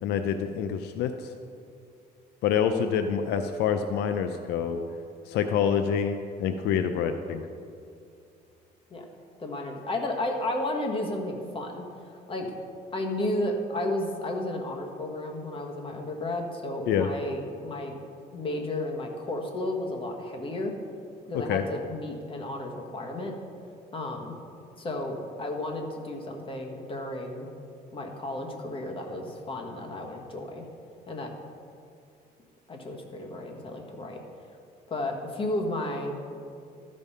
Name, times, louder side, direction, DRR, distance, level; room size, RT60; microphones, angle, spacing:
voice 1, 0.0-1.3 2.4-4.8 5.3-7.4 16.9-17.1 21.3-21.6, left 7 dB, 80° left, 8 dB, 0.5 m, -27 dB
voice 2, 9.4-11.8 12.3-12.5 12.9-18.0 18.3-20.7 21.3-23.3 23.9-24.3 24.8-27.5 27.9-30.7 31.1-31.3 32.7-34.2 34.9-36.2, left 1 dB, 30° left, 2 dB, 1.4 m, -33 dB
13.0 x 5.4 x 5.5 m, 2.4 s
cardioid pair, 110°, 17 cm